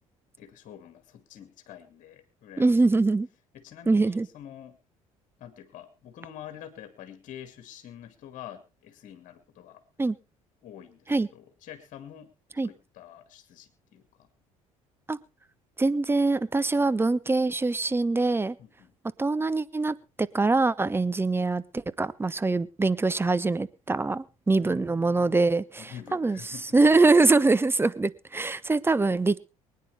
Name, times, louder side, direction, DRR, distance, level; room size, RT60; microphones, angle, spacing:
voice 1, 0.4-2.7 3.5-4.8 5.4-9.8 10.6-14.3 18.6-18.9 24.6-25.5 25.8-26.8, left 10 dB, 45° left, 9 dB, 2.1 m, -47 dB
voice 2, 2.6-3.3 3.9-4.3 10.0-10.2 11.1-11.3 12.6-12.7 15.1-15.2 15.8-18.6 19.2-26.4 26.7-29.4, right 3 dB, 15° right, 17 dB, 0.8 m, -23 dB
23.5 x 9.6 x 3.3 m, 0.29 s
figure-of-eight pair, 55°, 18 cm